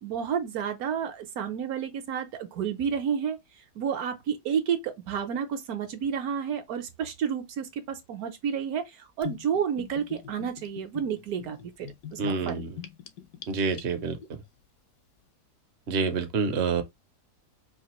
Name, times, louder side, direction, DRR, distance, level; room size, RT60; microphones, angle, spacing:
voice 1, 0.0-12.7, right 7 dB, 70° right, 1.2 m, -31 dB
Gurgling / Bathtub (filling or washing), 9.2-14.3, left 9 dB, 80° left, 1.2 m, -42 dB
voice 2, 12.2-12.8 13.5-14.4 15.9-16.8, right 4 dB, 50° right, 0.8 m, -28 dB
4.8 x 2.5 x 2.9 m
omnidirectional pair, 1.7 m